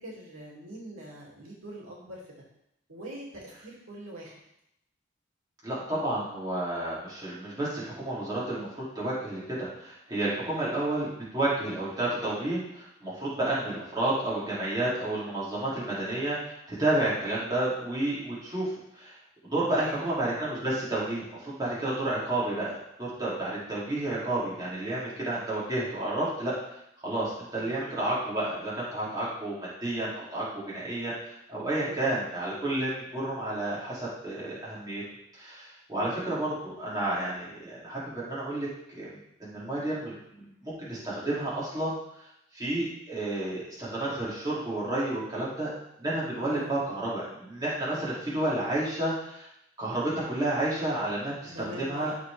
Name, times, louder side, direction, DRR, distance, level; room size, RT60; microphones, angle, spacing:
voice 1, 0.0-2.2 2.9-4.4 10.4-10.7 19.8-20.2 27.6-27.9 31.8-32.2 35.9-36.3 46.4-46.8 51.5-52.2, right 1 dB, 85° right, -4 dB, 2.7 m, -43 dB
voice 2, 5.6-9.4 9.8-19.1 19.5-26.5 27.0-35.0 35.3-39.1 39.4-42.0 42.5-45.7 46.0-49.5 49.8-52.1, right 1 dB, 20° right, -8 dB, 3.0 m, -31 dB
13.5 x 4.7 x 3.5 m, 0.78 s
head